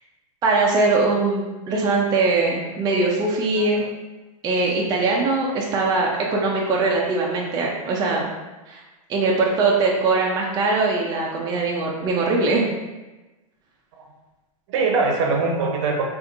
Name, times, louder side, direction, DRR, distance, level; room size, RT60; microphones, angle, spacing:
voice 1, 0.4-3.8 4.4-8.3 8.7-8.8 9.1-12.7, right 3 dB, 20° right, -2 dB, 0.5 m, -21 dB
voice 2, 14.7-16.1, right 3 dB, 55° right, 2 dB, 0.7 m, -23 dB
4.1 x 2.5 x 2.6 m, 1.1 s
hypercardioid pair, 120°, 19 cm